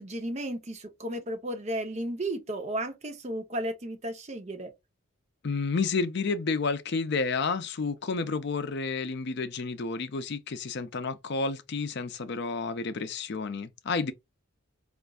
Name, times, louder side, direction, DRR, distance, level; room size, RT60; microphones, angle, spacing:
voice 1, 0.0-4.7, right 1 dB, 35° right, 0.7 m, -34 dB
voice 2, 5.4-14.1, left 4 dB, 55° left, 0.5 m, -30 dB
4.3 x 2.5 x 2.3 m
head